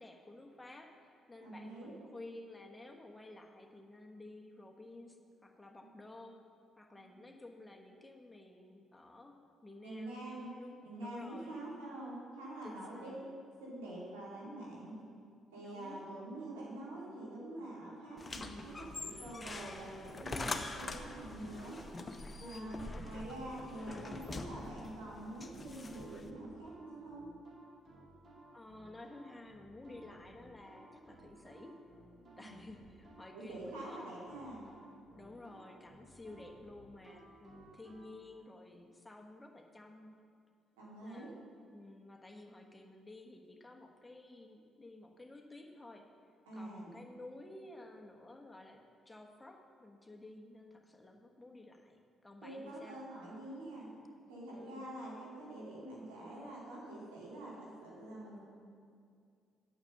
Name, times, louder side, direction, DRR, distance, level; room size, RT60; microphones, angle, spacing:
voice 1, 0.0-5.2 5.4-6.4 6.8-11.6 12.6-13.2 15.6-16.0 22.4-23.3 28.5-31.8 32.4-34.0 35.2-40.2 41.0-46.1 46.5-53.0 54.5-54.9, left 2 dB, 15° left, 2 dB, 1.2 m, -53 dB
voice 2, 1.4-2.0 6.9-7.3 9.8-10.5 10.8-13.3 13.6-15.0 15.5-21.8 22.4-27.2 32.2-32.6 33.3-34.6 40.7-41.3 46.5-47.0 52.4-53.9 54.3-58.4, right 1 dB, 85° right, -6 dB, 2.6 m, -46 dB
sound 1, 18.2-26.3, left 3 dB, 30° left, 0.8 m, -44 dB
sound 2, 18.6-38.1, right 2 dB, 50° right, 1.9 m, -58 dB
8.9 x 6.6 x 6.6 m, 2.2 s
hypercardioid pair, 50°, 0 cm